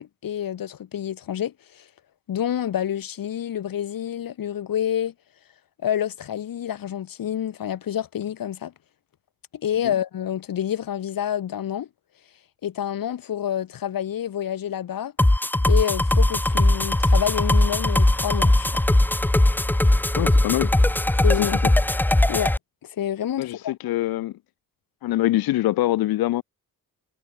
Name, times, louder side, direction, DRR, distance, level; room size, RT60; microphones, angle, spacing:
voice 1, 0.0-1.8 2.3-5.1 5.8-8.7 9.5-11.9 12.6-15.1 15.7-18.7 21.2-21.6 22.3-22.5 22.8-23.7, left 10 dB, 70° left, 1.4 m, -28 dB
sound 1, 15.2-22.6, left 1 dB, 5° left, 0.5 m, -19 dB
voice 2, 20.2-20.7 21.4-21.7 23.4-24.3 25.0-26.4, left 15 dB, 90° left, 0.5 m, -24 dB
cardioid pair, 90°, 35 cm